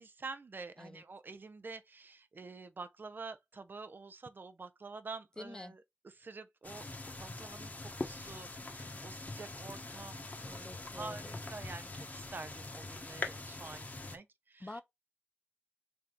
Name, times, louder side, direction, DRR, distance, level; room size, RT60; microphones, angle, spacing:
voice 1, 0.0-14.8, right 4 dB, 55° right, 0.5 m, -48 dB
voice 2, 5.4-5.7 10.6-11.3 14.6-14.8, left 2 dB, 20° left, 0.4 m, -46 dB
sound 1, 6.6-14.2, left 2 dB, 40° left, 0.9 m, -43 dB
3.4 x 2.9 x 3.8 m
wide cardioid pair, 65°, 4 cm